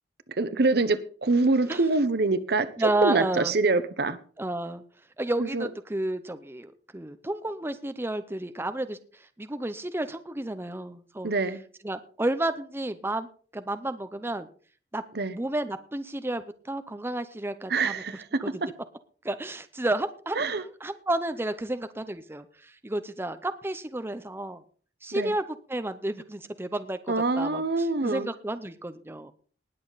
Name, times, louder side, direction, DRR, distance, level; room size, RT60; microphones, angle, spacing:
voice 1, 0.4-4.2 5.4-5.7 11.2-11.6 15.1-15.4 17.7-18.7 20.3-20.6 25.1-25.3 27.1-28.3, right 3 dB, 65° right, 1.0 m, -25 dB
voice 2, 2.8-3.6 4.4-4.8 5.2-11.3 11.8-13.3 13.5-14.5 14.9-15.0 15.3-18.0 18.4-18.5 19.2-24.6 25.0-25.4 25.7-29.3, right 1 dB, 15° right, 0.7 m, -31 dB
19.5 x 7.3 x 4.0 m
head